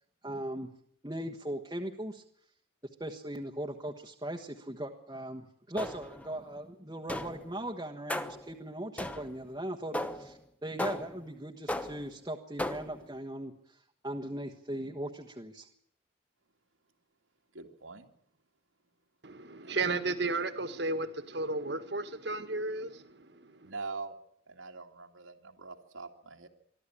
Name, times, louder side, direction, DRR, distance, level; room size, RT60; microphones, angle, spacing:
voice 1, 0.2-0.7 1.0-2.2 3.0-13.5 14.0-15.7, right 1 dB, 20° right, 1 dB, 1.3 m, -39 dB
sound 1, 5.8-6.3 7.1-7.5 8.1-8.5 9.0-9.4 9.9-10.4 10.8-11.3 11.7-12.1 12.6-13.0, left 1 dB, 5° left, 1.0 m, -36 dB
voice 2, 17.5-18.1 19.6-19.8 23.6-24.2 24.5-26.5, right 4 dB, 90° right, 3 dB, 2.6 m, -43 dB
voice 3, 19.2-23.7, right 3 dB, 55° right, 11 dB, 1.8 m, -34 dB
23.5 x 13.0 x 9.9 m, 0.68 s
head